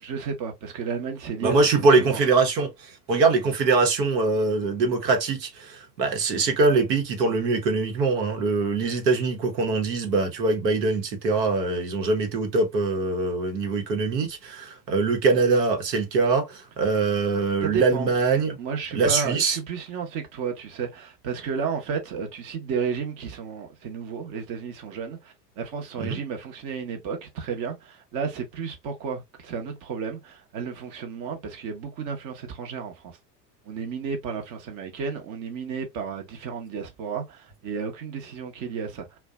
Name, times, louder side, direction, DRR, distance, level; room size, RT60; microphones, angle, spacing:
voice 1, 0.0-1.6 1.9-2.2 17.6-18.1 18.6-33.1 33.7-39.1, right 6 dB, 40° right, 0.9 m, -32 dB
voice 2, 1.4-18.6 18.9-19.6 26.0-26.2, right 3 dB, 80° right, 1.0 m, -23 dB
2.5 x 2.2 x 2.2 m
hypercardioid pair, 100°, 49 cm